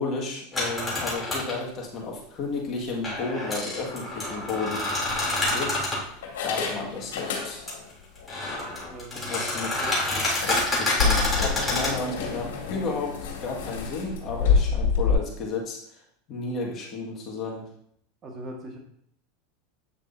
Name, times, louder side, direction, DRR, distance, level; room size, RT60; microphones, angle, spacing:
voice 1, 0.0-4.9 5.2-7.7 9.1-16.0 16.3-17.7, left 3 dB, 40° left, -2 dB, 1.9 m, -33 dB
sound 1, 0.5-1.6 3.0-6.0 7.7-7.8 8.2-12.0, left 2 dB, 15° left, 3.3 m, -28 dB
sound 2, 4.2-4.4 5.1-5.8 6.2-7.9 8.2-8.3 8.8-8.9 9.2-9.3 10.2-15.1, left 6 dB, 85° left, 2.1 m, -28 dB
voice 2, 8.9-9.5 9.8-10.0 18.2-18.8, right 1 dB, 30° right, 0 dB, 1.7 m, -40 dB
8.9 x 6.5 x 2.8 m, 0.68 s
supercardioid pair, 120°, 0 cm